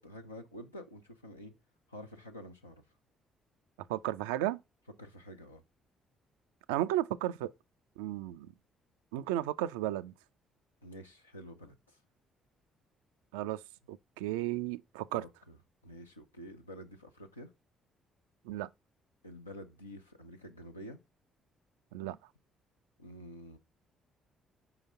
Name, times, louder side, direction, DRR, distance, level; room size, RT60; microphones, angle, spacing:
voice 1, 0.0-1.5 1.9-2.8 5.0-5.6 10.8-12.0 15.2-15.6 15.8-17.5 19.2-21.0 23.0-23.6, equal, 90° left, 0.6 m, -48 dB
voice 2, 3.9-4.6 6.7-7.5 8.0-8.5 9.1-10.1 13.3-13.6 13.9-15.2 18.4-18.7 21.9-22.2, right 14 dB, 70° right, 0.3 m, -34 dB
5.0 x 3.9 x 5.6 m
figure-of-eight pair, 45°, 0 cm